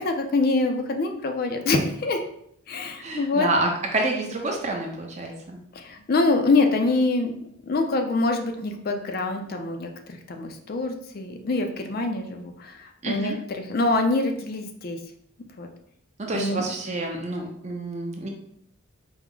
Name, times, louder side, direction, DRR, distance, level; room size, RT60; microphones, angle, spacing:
voice 1, 0.0-2.2 2.7-3.5 5.7-13.3 13.7-15.0 15.6-15.7 16.3-16.6, left 3 dB, 45° left, 5 dB, 0.4 m, -25 dB
voice 2, 3.0-5.6 13.0-13.4 16.2-18.3, right 2 dB, 30° right, 1 dB, 0.6 m, -28 dB
4.5 x 2.0 x 3.7 m, 0.71 s
head